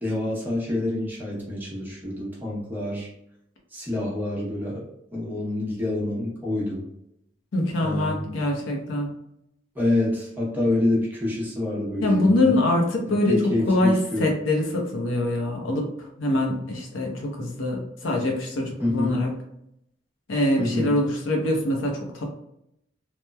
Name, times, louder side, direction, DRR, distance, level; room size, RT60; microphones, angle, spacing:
voice 1, 0.0-3.1 3.7-4.8 5.1-6.9 7.8-8.4 9.8-12.6 13.1-14.3 18.8-19.2 20.6-20.9, left 1 dB, 10° right, -5 dB, 0.7 m, -27 dB
voice 2, 7.5-9.1 12.0-19.3 20.3-22.3, left 1 dB, 85° left, 1 dB, 0.6 m, -24 dB
2.9 x 2.1 x 2.2 m, 0.78 s
head